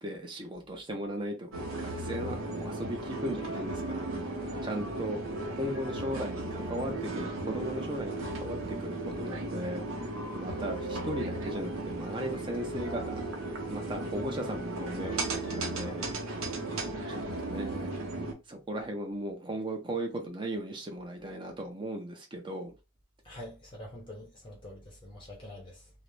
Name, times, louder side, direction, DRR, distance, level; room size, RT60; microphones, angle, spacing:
voice 1, 0.0-4.1 4.6-5.2 5.6-9.8 10.3-16.0 17.1-17.9 18.5-22.7, right 1 dB, 25° right, 0.5 m, -37 dB
sound 1, 1.5-18.3, right 2 dB, 75° right, 0.7 m, -35 dB
voice 2, 23.2-25.9, left 1 dB, 25° left, 0.6 m, -46 dB
2.4 x 2.0 x 3.1 m
head